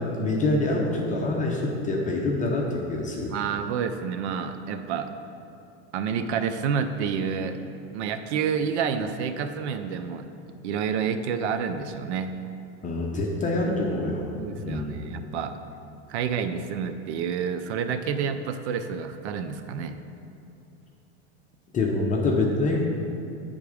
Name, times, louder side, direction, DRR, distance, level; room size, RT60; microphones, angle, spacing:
voice 1, 0.0-3.3 12.8-14.3 14.6-15.2 21.7-22.8, left 2 dB, 25° left, -1 dB, 0.7 m, -26 dB
voice 2, 3.3-5.1 5.9-7.6 7.9-10.3 10.6-12.3 14.4-15.6 16.1-20.0, right 7 dB, 90° right, 9 dB, 0.5 m, -29 dB
9.4 x 3.6 x 5.0 m, 2.7 s
supercardioid pair, 135°, 33 cm